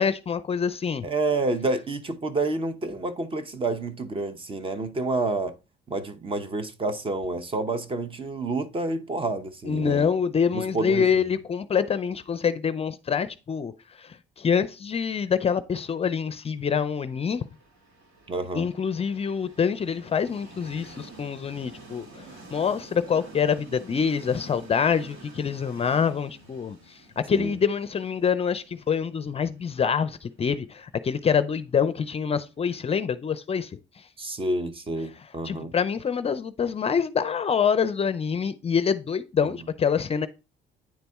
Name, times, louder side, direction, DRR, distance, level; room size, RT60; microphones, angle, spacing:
voice 1, 0.0-1.1 9.7-13.7 14.0-17.5 18.5-34.0 35.4-40.3, left 6 dB, 30° left, 0.5 m, -26 dB
voice 2, 1.0-5.5 5.9-10.1 10.5-11.3 18.3-18.7 27.3-27.5 34.2-35.7, right 2 dB, 30° right, 0.8 m, -29 dB
Train, 16.8-32.6, right 2 dB, 85° right, 2.2 m, -49 dB
9.4 x 4.0 x 3.5 m
cardioid pair, 115°, 19 cm